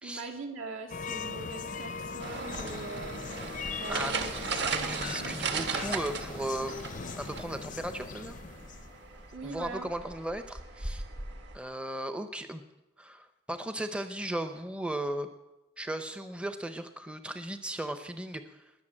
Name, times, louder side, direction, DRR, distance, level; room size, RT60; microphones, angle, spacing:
voice 1, 0.0-3.2 3.8-5.4 9.3-9.9, right 3 dB, 75° right, 1 dB, 2.4 m, -42 dB
sound 1, 0.9-9.2, left 5 dB, 40° left, 0.5 m, -40 dB
sound 2, 2.2-11.6, right 4 dB, 55° right, 1.4 m, -37 dB
voice 2, 3.9-4.2 4.7-6.7 7.2-8.4 9.4-11.0 11.5-12.6 13.0-15.3 15.8-18.6, right 1 dB, 5° right, 8 dB, 0.6 m, -36 dB
20.5 x 6.9 x 8.8 m, 1.0 s
head